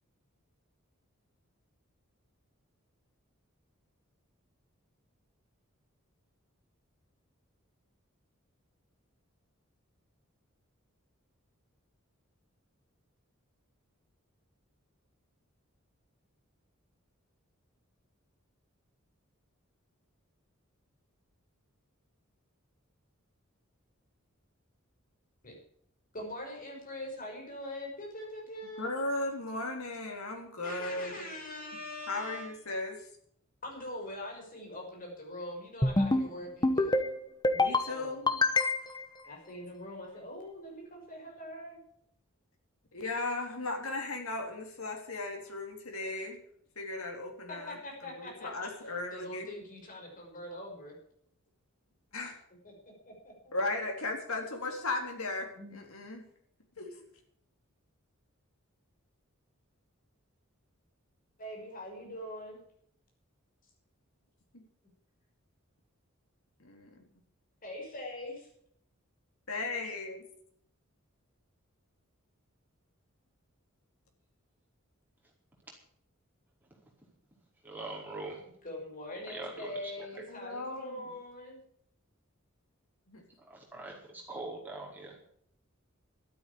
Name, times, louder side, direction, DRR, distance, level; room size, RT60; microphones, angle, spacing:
voice 1, 26.1-28.9 30.6-32.5 33.6-36.9 37.8-38.3 39.2-41.8 47.5-48.7 49.1-50.9 52.2-52.3 52.6-53.5 55.6-55.8 61.4-62.6 67.6-68.5 78.6-81.6, left 1 dB, 40° left, 0 dB, 6.0 m, -43 dB
voice 2, 28.6-31.3 32.1-33.1 37.5-38.4 42.9-46.4 46.8-47.8 48.2-49.5 52.1-52.3 53.5-56.3 56.8-57.0 66.6-67.0 69.5-70.2 80.3-81.0 83.1-83.2, left 2 dB, 85° left, 3 dB, 3.5 m, -36 dB
sound 1, 35.8-36.3 36.6-37.1 37.4-37.9 38.3-39.0, left 2 dB, 20° left, 1.1 m, -26 dB
voice 3, 77.6-78.4 79.3-80.2 83.5-85.2, right 2 dB, 10° right, -4 dB, 4.9 m, -42 dB
12.5 x 9.3 x 8.6 m, 0.67 s
head